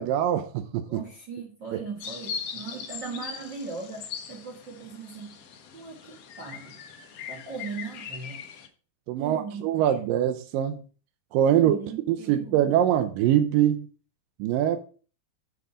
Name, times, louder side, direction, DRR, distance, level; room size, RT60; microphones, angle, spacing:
voice 1, 0.0-1.0 9.1-10.8 11.3-11.8 12.1-13.9 14.4-14.8, right 10 dB, 80° right, 2.1 m, -23 dB
voice 2, 0.9-5.3 5.7-6.8 7.3-8.4 9.2-9.7 11.5-12.7, right 5 dB, 55° right, 1.2 m, -39 dB
sound 1, 2.0-8.7, left 7 dB, 85° left, 1.3 m, -40 dB
7.2 x 6.5 x 4.9 m
omnidirectional pair, 4.4 m